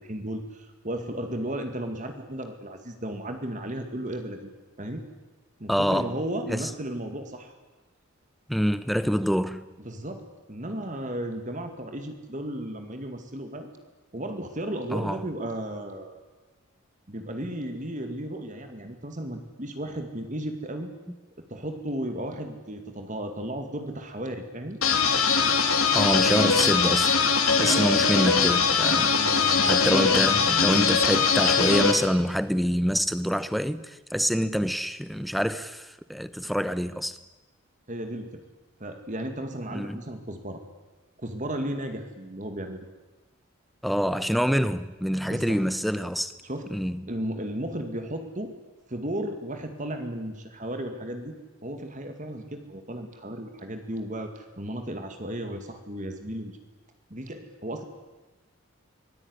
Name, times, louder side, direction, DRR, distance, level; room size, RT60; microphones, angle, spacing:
voice 1, 0.0-4.5 4.8-5.0 5.6-7.5 9.8-13.7 14.1-16.2 17.1-20.9 21.5-24.8 27.5-28.1 29.0-30.3 37.9-38.4 38.8-40.6 41.2-42.9 45.3-45.6 46.4-46.7 47.1-48.5 48.9-56.6 57.1-57.8, right 1 dB, 35° right, 2.2 m, -34 dB
voice 2, 5.7-6.1 6.5-6.6 8.5-9.6 14.9-15.2 25.9-27.2 27.6-37.2 39.7-40.0 43.8-46.3 46.7-47.1, equal, ahead, 0.9 m, -26 dB
sound 1, 24.8-31.9, left 5 dB, 75° left, 3.1 m, -21 dB
24.0 x 19.0 x 9.8 m
head